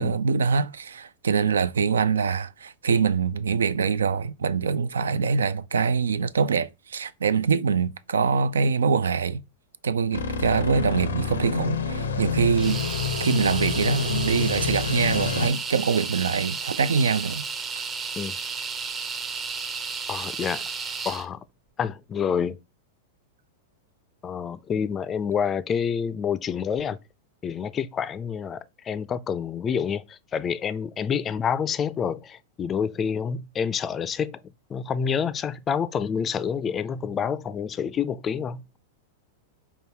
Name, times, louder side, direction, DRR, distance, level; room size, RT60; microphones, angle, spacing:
voice 1, 0.0-9.4 9.8-12.8 13.2-17.4, right 5 dB, 85° right, 0.3 m, -24 dB
sound 1, 10.1-15.5, left 6 dB, 90° left, 0.6 m, -28 dB
sound 2, 12.6-21.3, right 5 dB, 25° right, 0.6 m, -33 dB
voice 2, 20.1-20.6 21.0-21.4 21.8-22.6 24.2-27.0 27.4-34.4 34.7-38.6, left 7 dB, 25° left, 0.3 m, -28 dB
5.4 x 2.3 x 3.3 m
hypercardioid pair, 110°, 0 cm